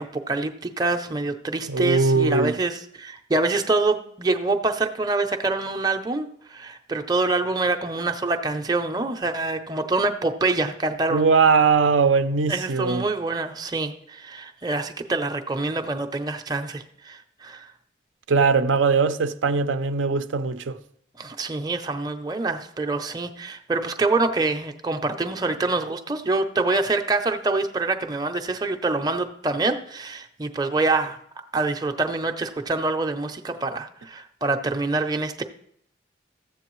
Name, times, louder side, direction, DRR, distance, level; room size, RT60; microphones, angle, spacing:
voice 1, 0.0-11.2 12.5-17.7 21.2-31.2 31.5-35.4, right 3 dB, 20° right, 0.5 m, -26 dB
voice 2, 1.7-2.6 11.1-13.0 18.3-20.8, right 5 dB, 85° right, 0.5 m, -20 dB
14.0 x 7.9 x 3.1 m
head